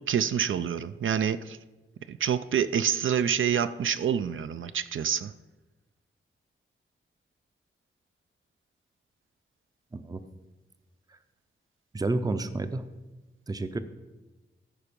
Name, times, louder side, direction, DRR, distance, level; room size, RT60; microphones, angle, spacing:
voice 1, 0.1-1.6 2.1-5.3, right 8 dB, 70° right, 13 dB, 0.4 m, -27 dB
voice 2, 11.9-12.9 13.5-13.8, right 2 dB, 20° right, 10 dB, 0.5 m, -30 dB
14.5 x 4.8 x 5.2 m, 1.1 s
wide cardioid pair, 150°, 21 cm